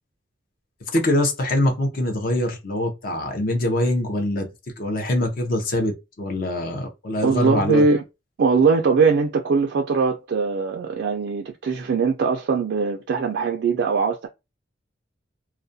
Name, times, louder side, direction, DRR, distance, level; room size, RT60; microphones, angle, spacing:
voice 1, 0.8-4.5 4.8-7.8, left 1 dB, 50° left, 0.6 m, -23 dB
voice 2, 7.2-8.0 8.4-14.3, right 4 dB, 65° right, 0.3 m, -21 dB
2.3 x 2.1 x 2.6 m
head